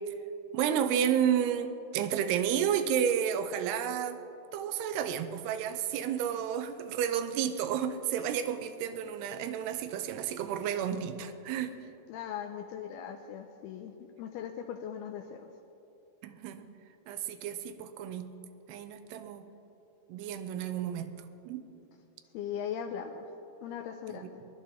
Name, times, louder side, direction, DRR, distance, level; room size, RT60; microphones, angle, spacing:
voice 1, 0.5-4.2 4.5-11.7 16.2-16.7 17.1-18.3 18.7-19.5 20.1-21.1 21.5-21.6 24.1-24.2, right 9 dB, 75° right, 8 dB, 2.6 m, -31 dB
voice 2, 12.1-13.9 14.2-15.5 22.3-23.2 23.6-24.4, left 8 dB, 85° left, 4 dB, 2.3 m, -39 dB
23.0 x 11.0 x 4.2 m, 2.8 s
omnidirectional pair, 5.2 m